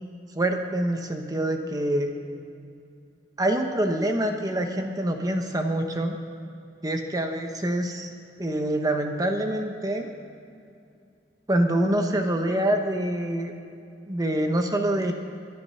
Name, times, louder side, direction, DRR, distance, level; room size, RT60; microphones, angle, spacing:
voice 1, 0.3-2.1 3.4-6.2 6.8-8.1 8.4-10.1 11.5-13.5 14.1-15.1, right 1 dB, 20° right, 4 dB, 1.0 m, -25 dB
23.5 x 10.5 x 5.6 m, 2.5 s
head